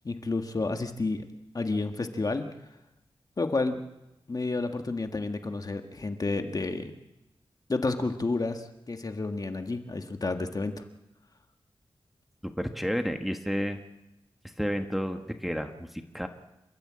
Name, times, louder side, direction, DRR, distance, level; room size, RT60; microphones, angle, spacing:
voice 1, 0.0-1.2 1.5-2.4 3.4-3.8 4.3-6.9 7.7-10.8, left 3 dB, 40° left, 6 dB, 1.7 m, -30 dB
voice 2, 12.4-13.8 14.4-16.3, equal, ahead, 6 dB, 1.4 m, -31 dB
28.5 x 13.5 x 8.7 m, 0.93 s
wide cardioid pair, 90°, 10 cm